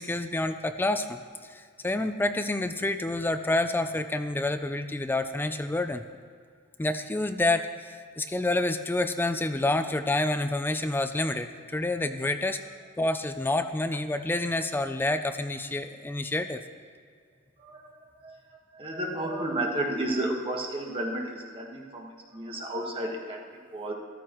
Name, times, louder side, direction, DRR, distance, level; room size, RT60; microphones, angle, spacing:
voice 1, 0.0-6.0 6.8-12.6 13.0-16.6, left 2 dB, 10° left, 9 dB, 0.3 m, -28 dB
voice 2, 17.6-23.4 23.7-23.9, right 1 dB, 25° right, -1 dB, 1.4 m, -32 dB
14.0 x 12.5 x 3.0 m, 2.1 s
head